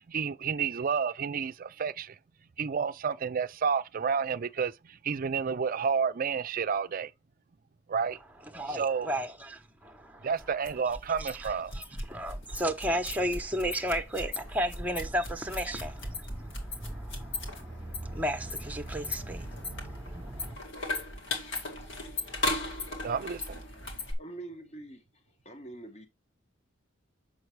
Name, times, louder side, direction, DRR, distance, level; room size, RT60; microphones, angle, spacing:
voice 1, 0.1-2.2 2.6-7.1 7.9-8.2 8.7-9.1 10.2-11.7 23.0-23.6, right 6 dB, 45° right, 0.4 m, -30 dB
voice 2, 8.5-10.3 11.2-20.6, equal, 10° right, 0.9 m, -34 dB
sound 1, 10.4-24.1, left 2 dB, 70° left, 2.1 m, -38 dB
voice 3, 24.2-26.1, right 2 dB, 35° left, 1.1 m, -48 dB
7.2 x 5.9 x 3.2 m
head